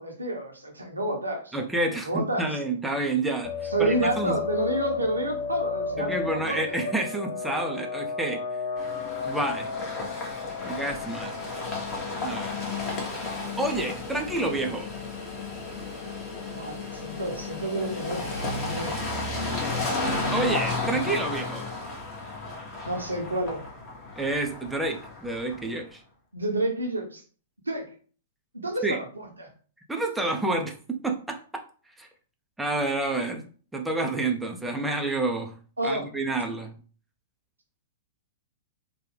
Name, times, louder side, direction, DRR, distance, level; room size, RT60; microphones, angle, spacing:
voice 1, 0.0-1.5 2.0-2.5 3.7-6.8 16.5-19.0 22.9-23.6 26.3-27.2 27.7-27.9 28.5-29.5 35.8-36.1, right 1 dB, 85° right, 2 dB, 0.8 m, -29 dB
voice 2, 1.5-4.4 6.0-8.4 9.2-9.7 10.6-11.4 12.2-12.6 13.6-14.9 20.3-21.7 24.2-26.0 28.8-29.0 29.9-31.4 32.0-32.1 32.6-33.4 33.7-35.5 35.8-36.7, right 2 dB, 5° right, 2 dB, 0.5 m, -29 dB
sound 1, 3.4-12.7, left 5 dB, 55° left, 0.4 m, -34 dB
sound 2, 8.8-25.7, left 3 dB, 25° left, 1.2 m, -33 dB
3.2 x 2.2 x 3.2 m, 0.40 s
figure-of-eight pair, 105°, 0 cm